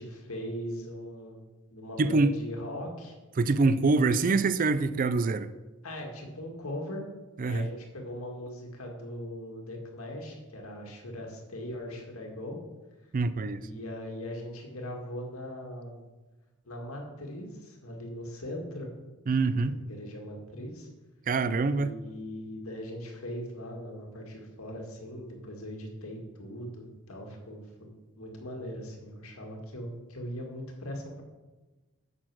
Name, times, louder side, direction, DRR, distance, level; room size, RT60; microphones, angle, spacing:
voice 1, 0.0-1.4 1.7-3.2 5.8-7.0 7.4-12.6 13.6-16.0 16.7-18.9 19.5-20.9 21.7-27.9 28.2-31.2, equal, 75° left, 1 dB, 2.1 m, -40 dB
voice 2, 2.0-2.3 3.4-5.5 7.4-7.7 13.1-13.6 19.3-19.7 21.3-21.9, right 3 dB, 40° right, 14 dB, 0.4 m, -25 dB
8.8 x 6.4 x 6.2 m, 1.2 s
head